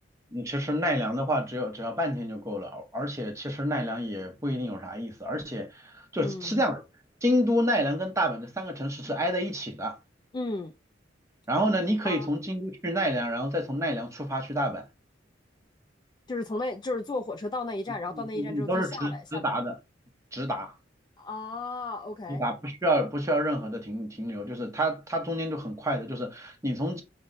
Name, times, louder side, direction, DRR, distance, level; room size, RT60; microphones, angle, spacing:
voice 1, 0.3-6.8 7.2-10.0 11.5-14.9 18.1-19.8 20.3-20.7 22.3-27.0, equal, 15° right, 0.8 m, -29 dB
voice 2, 6.2-6.6 10.3-10.7 12.0-12.3 16.3-19.4 21.2-22.4, left 2 dB, 25° left, 0.3 m, -34 dB
5.3 x 2.1 x 3.8 m
head